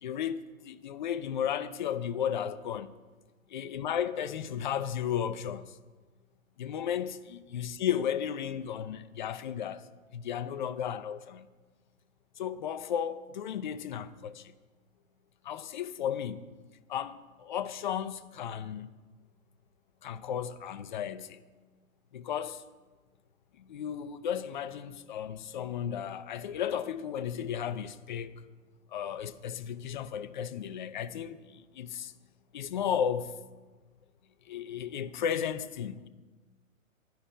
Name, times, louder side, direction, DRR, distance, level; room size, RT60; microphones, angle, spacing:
voice 1, 0.0-2.9 3.5-5.8 6.6-11.5 12.4-14.6 15.4-16.5 16.9-18.9 20.0-21.4 22.1-22.6 23.6-28.4 28.9-32.1 32.5-33.4 34.4-36.1, left 9 dB, 35° left, 0.5 m, -34 dB
11.5 x 5.8 x 9.0 m
hypercardioid pair, 130°, 42 cm